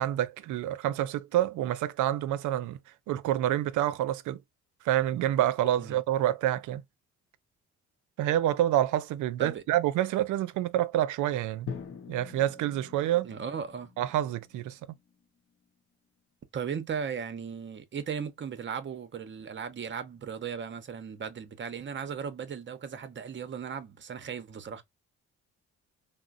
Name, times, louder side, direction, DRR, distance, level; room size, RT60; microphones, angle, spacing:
voice 1, 0.0-2.8 3.1-4.4 4.8-6.8 8.2-11.7 12.1-13.3 14.0-14.8, right 12 dB, 80° right, 0.5 m, -27 dB
Drum, 11.7-15.7, left 6 dB, 45° left, 0.7 m, -44 dB
voice 2, 13.2-13.9 16.5-24.8, right 7 dB, 40° right, 0.7 m, -37 dB
3.7 x 2.0 x 2.4 m
cardioid pair, 90°, 30 cm